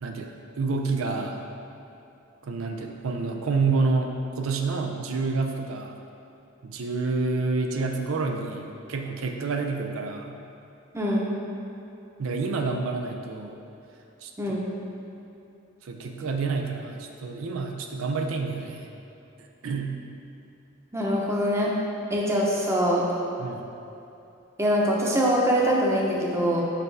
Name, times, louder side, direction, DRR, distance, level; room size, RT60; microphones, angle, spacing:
voice 1, 0.0-1.5 2.4-6.0 6.6-10.4 12.2-13.6 14.2-14.3 15.8-18.9 19.4-20.0 23.4-23.7, right 3 dB, 85° right, 3 dB, 0.5 m, -28 dB
voice 2, 10.9-11.3 14.4-14.7 20.9-21.7 22.1-23.1 24.6-26.6, equal, 15° right, -3 dB, 0.8 m, -23 dB
6.6 x 5.4 x 3.3 m, 2.9 s
head